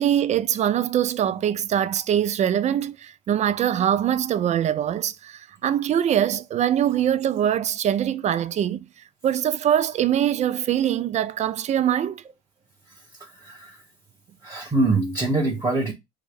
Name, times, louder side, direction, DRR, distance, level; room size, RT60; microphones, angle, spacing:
voice 1, 0.0-8.9 9.2-12.2, right 10 dB, 35° right, 0.4 m, -23 dB
voice 2, 13.2-13.8 14.4-15.9, right 2 dB, 20° right, 0.9 m, -24 dB
3.4 x 2.1 x 3.4 m
hypercardioid pair, 75°, 21 cm